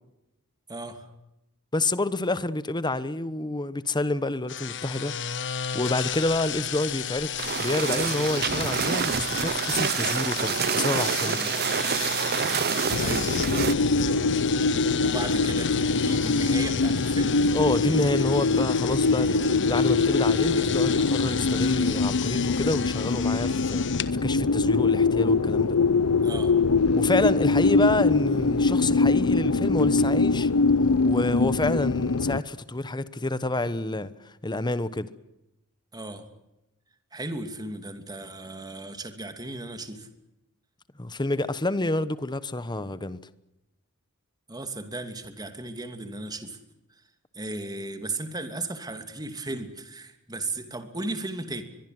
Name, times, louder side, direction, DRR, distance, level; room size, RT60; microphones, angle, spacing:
voice 1, 0.7-1.1 11.3-11.5 13.0-13.9 15.0-17.4 26.2-26.5 35.9-36.3 37.1-40.1 44.5-46.6 46.9-47.0 47.3-51.6, right 2 dB, 20° right, 2.8 m, -36 dB
voice 2, 1.7-5.2 5.4-11.4 17.5-25.8 27.0-30.5 31.0-35.1 41.0-43.2, left 2 dB, 20° left, 1.1 m, -28 dB
sound 1, 4.5-24.1, left 9 dB, 55° left, 1.2 m, -34 dB
sound 2, 7.4-13.7, right 7 dB, 45° right, 0.8 m, -27 dB
sound 3, 12.9-32.4, left 3 dB, 75° left, 0.8 m, -23 dB
23.5 x 22.5 x 7.8 m
head